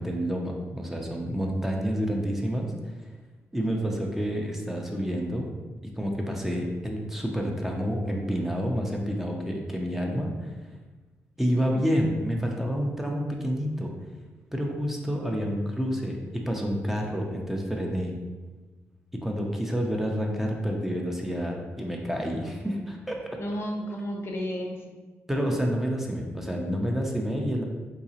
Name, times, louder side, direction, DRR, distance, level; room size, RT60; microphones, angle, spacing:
voice 1, 0.0-2.7 3.5-5.5 5.8-10.5 11.4-13.9 14.5-18.2 19.1-23.2 25.3-27.6, equal, 5° right, 0 dB, 0.5 m, -29 dB
voice 2, 23.4-24.8, equal, 50° left, 2 dB, 0.5 m, -33 dB
3.8 x 2.8 x 2.8 m, 1.3 s
cardioid pair, 100°, 5 cm